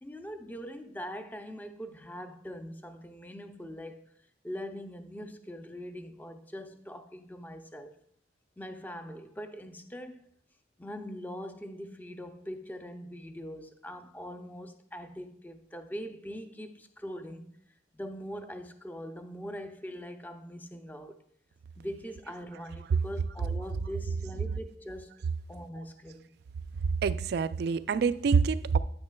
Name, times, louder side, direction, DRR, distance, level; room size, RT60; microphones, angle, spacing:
voice 1, 0.0-4.0 4.4-7.9 8.6-10.3 10.8-17.5 17.9-21.2 21.8-25.1 25.5-26.3, equal, 10° left, 0.4 m, -42 dB
voice 2, 27.0-28.8, right 5 dB, 60° right, 0.3 m, -26 dB
9.5 x 8.8 x 2.2 m
head